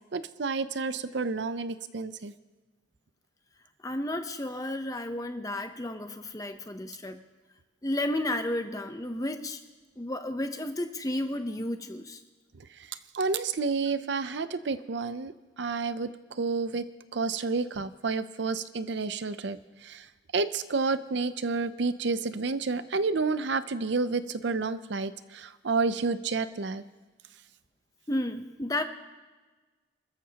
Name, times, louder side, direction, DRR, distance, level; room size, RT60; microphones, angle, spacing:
voice 1, 0.1-2.3 12.8-16.9 17.1-20.1 20.3-26.8, right 4 dB, 60° right, 13 dB, 0.6 m, -30 dB
voice 2, 3.8-7.2 7.8-9.6 10.0-12.2 28.1-28.8, left 1 dB, 20° left, 7 dB, 0.7 m, -32 dB
28.5 x 13.5 x 2.9 m, 1.3 s
head